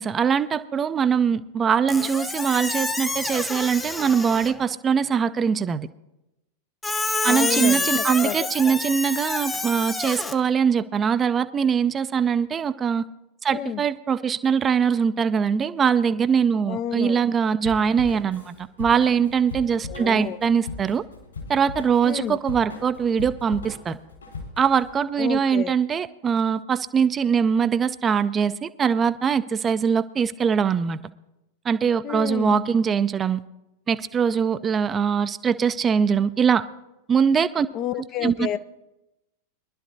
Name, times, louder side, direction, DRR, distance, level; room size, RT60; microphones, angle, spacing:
voice 1, 0.0-5.9 7.2-13.0 13.4-21.0 21.5-24.0 24.6-31.0 31.6-33.4 33.9-36.6 37.1-37.7 38.2-38.5, right 7 dB, 20° right, 0.4 m, -22 dB
Squeak, 1.9-4.6 6.8-10.3, left 2 dB, 10° left, 0.8 m, -28 dB
voice 2, 7.3-8.7 13.5-13.8 16.7-17.2 19.9-20.4 22.0-22.4 25.2-25.7 32.0-32.6 37.7-38.6, left 10 dB, 35° left, 0.5 m, -30 dB
Drum kit / Drum, 17.6-24.9, left 3 dB, 75° left, 4.3 m, -39 dB
23.0 x 12.0 x 2.7 m
figure-of-eight pair, 90°, 0 cm